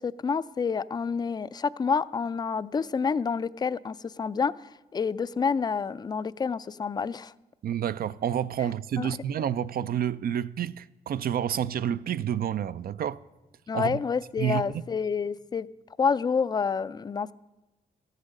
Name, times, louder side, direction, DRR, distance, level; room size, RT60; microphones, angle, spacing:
voice 1, 0.0-4.5 4.9-7.3 9.0-9.2 13.7-15.7 16.0-17.3, left 5 dB, 25° left, 0.3 m, -28 dB
voice 2, 7.6-13.2 13.7-14.0 14.4-14.8, right 9 dB, 65° right, 0.4 m, -29 dB
13.0 x 8.3 x 6.5 m
cardioid pair, 75°, 17 cm